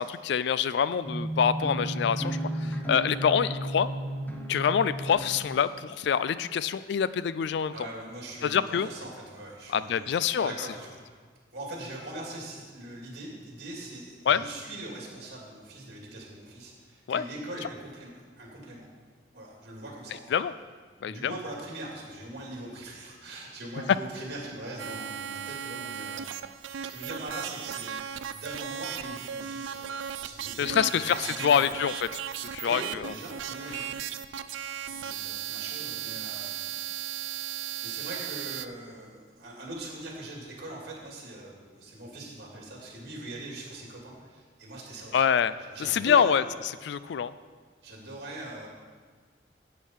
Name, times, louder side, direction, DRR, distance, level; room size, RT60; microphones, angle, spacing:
voice 1, 0.0-3.9 4.5-7.7 8.4-8.9 9.7-10.5 14.3-14.4 17.1-17.2 20.3-20.5 21.0-21.3 30.6-33.1 33.7-33.8 45.1-47.3, left 7 dB, 65° left, 15 dB, 0.3 m, -26 dB
sound 1, 1.0-5.6, right 1 dB, 10° left, 0.8 m, -33 dB
voice 2, 7.7-11.0 11.5-18.1 18.4-18.9 19.3-20.4 21.0-26.2 26.6-31.7 32.6-34.0 34.3-36.7 37.6-45.2 45.6-46.3 47.8-48.7, right 1 dB, 55° right, -2 dB, 2.8 m, -42 dB
sound 2, 24.8-38.7, right 9 dB, 80° right, 0.4 m, -36 dB
10.0 x 8.4 x 4.6 m, 1.5 s
head